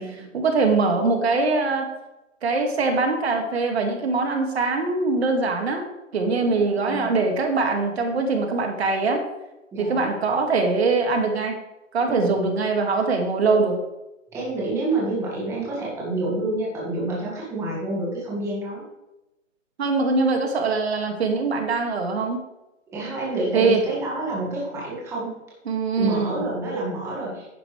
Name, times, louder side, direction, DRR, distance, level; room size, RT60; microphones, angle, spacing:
voice 1, 0.3-1.9 2.4-5.8 6.1-9.2 9.8-11.6 11.9-13.7 19.8-22.4 23.5-23.8 25.7-26.4, right 3 dB, 55° right, 3 dB, 2.1 m, -22 dB
voice 2, 6.2-7.1 9.7-10.0 12.1-12.3 14.3-18.8 22.9-25.4 26.0-27.5, right 2 dB, 5° right, -5 dB, 1.9 m, -28 dB
10.5 x 10.5 x 3.3 m, 0.96 s
hypercardioid pair, 155°, 39 cm